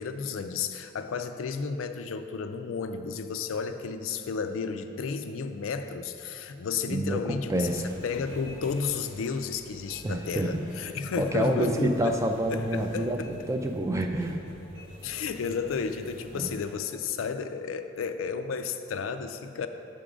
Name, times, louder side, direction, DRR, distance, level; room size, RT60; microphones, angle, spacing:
voice 1, 0.0-12.2 12.5-13.5 15.0-19.7, left 5 dB, 90° left, 8 dB, 0.4 m, -32 dB
voice 2, 6.9-7.9 10.0-10.6 11.2-14.4 16.4-16.5, right 1 dB, 15° right, 4 dB, 0.3 m, -28 dB
sound 1, 7.5-16.7, equal, 90° right, 1.1 m, -47 dB
7.5 x 3.6 x 5.0 m, 2.8 s
head